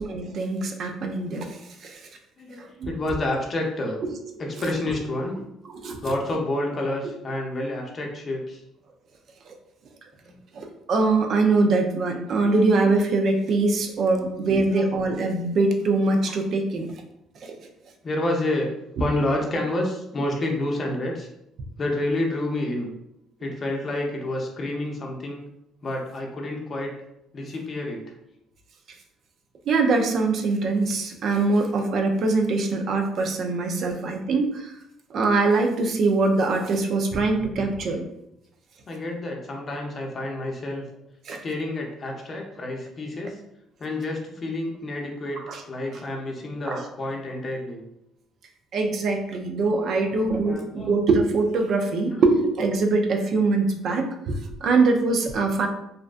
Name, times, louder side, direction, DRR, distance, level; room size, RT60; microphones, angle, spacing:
voice 1, 0.0-1.5 1.8-2.0 2.8-2.9 5.7-6.2 10.5-16.9 17.4-17.5 29.7-34.7 35.1-38.1 41.3-41.4 45.5-45.6 46.7-46.8 48.7-55.7, right 3 dB, 60° right, 3 dB, 0.4 m, -23 dB
voice 2, 2.4-4.0 4.4-5.4 6.0-8.6 10.3-10.4 12.5-12.6 14.1-14.3 14.8-14.9 18.0-18.7 19.0-21.3 21.8-22.9 23.4-25.4 25.8-26.9 27.3-28.0 38.9-40.8 41.4-43.4 43.8-45.4 45.7-47.8 49.9-50.9 51.8-52.2, left 1 dB, 40° left, 0 dB, 0.6 m, -29 dB
2.5 x 2.1 x 2.4 m, 0.81 s
supercardioid pair, 75°, 0 cm